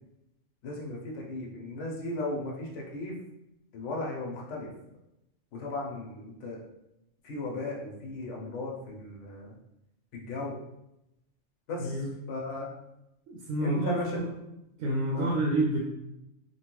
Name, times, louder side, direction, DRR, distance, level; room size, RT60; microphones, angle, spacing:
voice 1, 0.6-3.2 3.7-4.7 5.5-6.6 7.2-9.5 10.1-10.6 11.7-12.0 12.3-12.7 13.6-14.3 15.1-15.3, left 2 dB, 70° left, -2 dB, 1.0 m, -36 dB
voice 2, 13.3-14.2 14.8-15.8, right 1 dB, 80° right, -3 dB, 0.9 m, -28 dB
3.0 x 2.2 x 3.0 m, 0.86 s
omnidirectional pair, 1.3 m